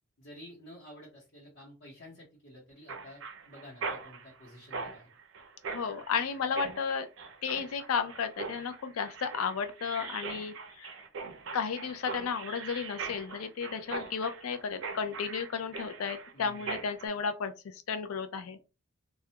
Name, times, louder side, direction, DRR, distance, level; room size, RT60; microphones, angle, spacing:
voice 1, 0.2-5.1 16.3-16.8, left 1 dB, 60° left, 0.9 m, -51 dB
Mechanisms, 2.9-17.1, right 4 dB, 65° right, 0.4 m, -41 dB
voice 2, 5.7-7.1 7.4-10.9 11.5-18.6, left 6 dB, 85° left, 0.4 m, -33 dB
2.3 x 2.0 x 2.8 m
head